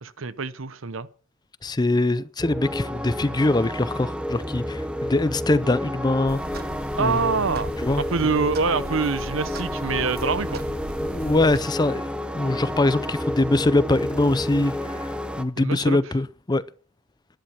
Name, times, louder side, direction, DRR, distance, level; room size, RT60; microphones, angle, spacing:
voice 1, 0.0-1.1 7.0-7.7 8.0-10.6 15.6-16.0, right 4 dB, 70° right, 0.9 m, -25 dB
voice 2, 1.6-6.6 7.0-7.2 7.8-8.0 11.0-16.6, left 2 dB, 20° left, 0.5 m, -23 dB
sound 1, 2.4-15.4, equal, 5° right, 0.8 m, -30 dB
sound 2, 6.3-11.6, right 2 dB, 50° right, 1.1 m, -39 dB
13.0 x 10.5 x 5.9 m
head